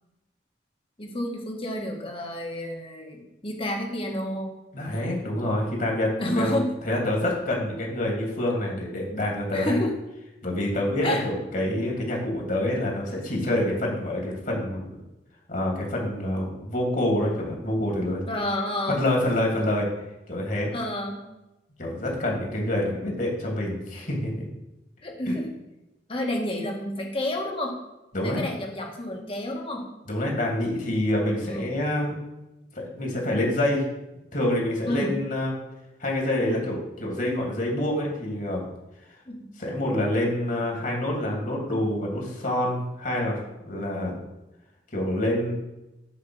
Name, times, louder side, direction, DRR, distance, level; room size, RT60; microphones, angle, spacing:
voice 1, 1.0-4.5 6.2-6.7 9.5-9.9 11.0-11.2 18.3-19.0 20.7-21.2 25.0-25.5 26.1-27.8 28.2-29.9 31.4-31.7 34.9-35.1 39.3-39.4, left 1 dB, 30° left, 0 dB, 1.8 m, -29 dB
voice 2, 4.7-6.6 6.8-9.8 10.4-15.0 15.5-18.2 18.9-19.9 20.3-20.7 21.8-24.5 25.3-25.4 28.1-28.5 30.0-32.1 32.7-33.8 34.3-35.5 36.0-38.6 39.6-44.2 44.9-45.5, left 1 dB, 50° left, -1 dB, 2.8 m, -27 dB
7.8 x 5.1 x 7.2 m, 0.97 s
head